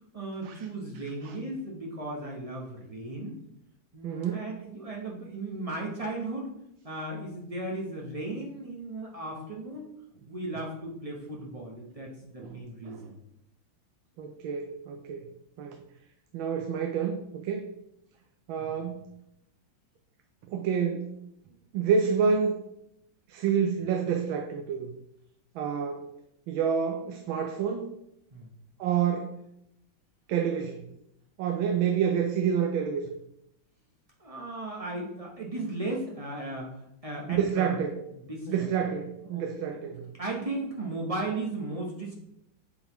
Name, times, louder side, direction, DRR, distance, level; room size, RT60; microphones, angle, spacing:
voice 1, 0.1-3.4 3.9-6.5 6.8-9.9 10.3-13.2 18.6-18.7 28.3-28.5 34.2-37.8 38.1-38.7 39.2-39.8 40.2-42.1, right 2 dB, 35° right, -2 dB, 0.5 m, -36 dB
voice 2, 4.0-4.5 12.4-13.1 14.2-15.3 15.6-15.8 16.3-17.7 18.5-19.1 20.4-21.2 21.7-22.6 23.3-24.9 25.5-26.1 26.5-27.9 28.8-29.4 30.3-30.9 31.4-33.1 37.3-38.0 38.5-40.1, right 7 dB, 85° right, 5 dB, 1.4 m, -28 dB
8.2 x 3.9 x 3.0 m, 0.78 s
omnidirectional pair, 2.1 m